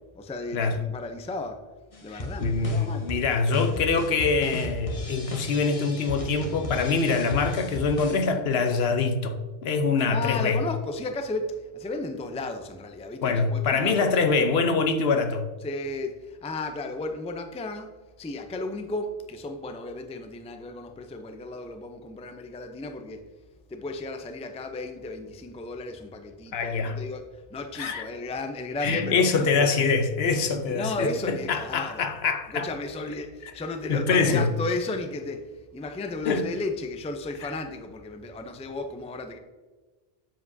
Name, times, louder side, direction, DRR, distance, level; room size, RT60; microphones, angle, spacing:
voice 1, 0.1-1.6 2.0-3.1 10.1-14.2 15.6-17.9 18.2-23.3 23.7-29.3 30.7-32.1 32.5-39.4, left 2 dB, 10° left, 0.3 m, -34 dB
sound 1, 1.9-8.3, left 1 dB, 35° left, 1.0 m, -36 dB
voice 2, 2.1-10.6 13.2-15.5 26.5-27.0 27.7-28.1 28.8-32.7 33.9-34.5 36.3-36.5 37.4-37.5, left 4 dB, 75° left, 1.0 m, -24 dB
7.7 x 7.4 x 2.7 m
omnidirectional pair, 1.1 m